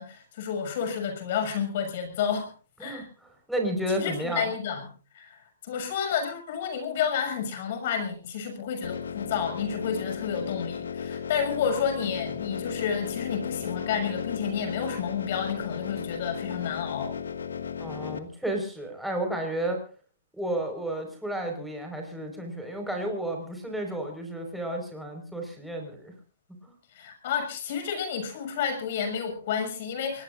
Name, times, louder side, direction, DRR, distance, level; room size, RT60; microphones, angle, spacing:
voice 1, 0.0-2.5 2.8-3.1 3.9-4.8 5.1-5.3 5.6-17.2 26.9-30.2, left 7 dB, 55° left, 7 dB, 6.3 m, -30 dB
voice 2, 2.8-4.5 17.8-19.8 20.3-26.1 26.6-26.7, right 1 dB, ahead, 2 dB, 4.8 m, -32 dB
sound 1, 8.8-18.2, left 7 dB, 85° left, 1.7 m, -35 dB
25.5 x 19.5 x 2.5 m, 0.37 s
hypercardioid pair, 140°, 0 cm